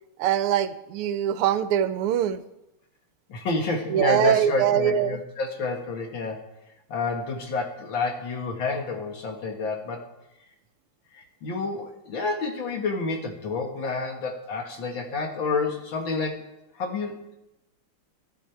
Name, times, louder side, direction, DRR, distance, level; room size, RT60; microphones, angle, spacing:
voice 1, 0.2-2.4 3.9-5.2, right 10 dB, 85° right, 13 dB, 1.6 m, -23 dB
voice 2, 3.3-6.4 6.9-10.1 11.1-16.5 16.8-17.4, left 3 dB, 60° left, 3 dB, 2.2 m, -29 dB
13.5 x 11.0 x 4.5 m, 0.91 s
omnidirectional pair, 2.4 m